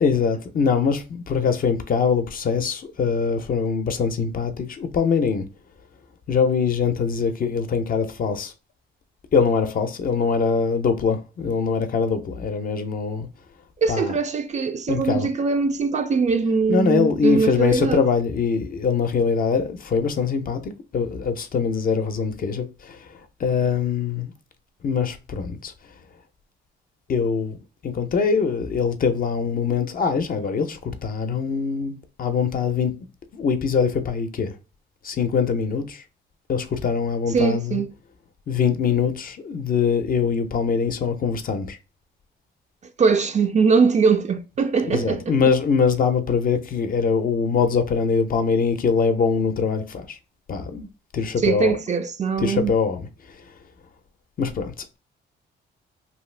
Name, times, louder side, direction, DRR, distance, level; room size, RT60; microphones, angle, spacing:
voice 1, 0.0-5.4 6.3-8.5 9.3-13.3 13.9-14.2 14.9-15.3 16.7-23.1 23.4-24.3 24.8-25.7 27.1-27.6 27.8-32.9 33.3-34.5 35.0-36.0 36.5-37.8 38.5-41.8 44.9-50.2 50.5-50.9 51.1-51.8 52.4-53.1 54.4-55.0, left 5 dB, 45° left, 0.5 m, -23 dB
voice 2, 13.8-18.0 37.3-37.9 43.0-45.3 51.4-52.7, right 5 dB, 35° right, 0.4 m, -21 dB
2.7 x 2.4 x 3.2 m
cardioid pair, 90°, 20 cm